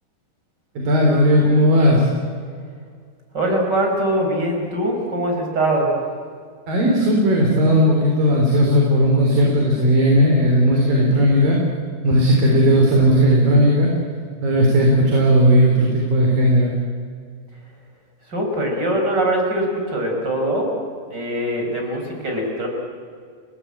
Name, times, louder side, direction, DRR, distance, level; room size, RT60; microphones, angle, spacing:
voice 1, 0.8-2.1 6.7-11.6 12.0-13.9 14.4-16.7, equal, 65° right, -1 dB, 5.3 m, -16 dB
voice 2, 3.3-5.9 18.3-20.8 21.1-22.7, right 1 dB, 25° right, 1 dB, 5.8 m, -22 dB
29.5 x 19.5 x 8.8 m, 2.1 s
omnidirectional pair, 4.4 m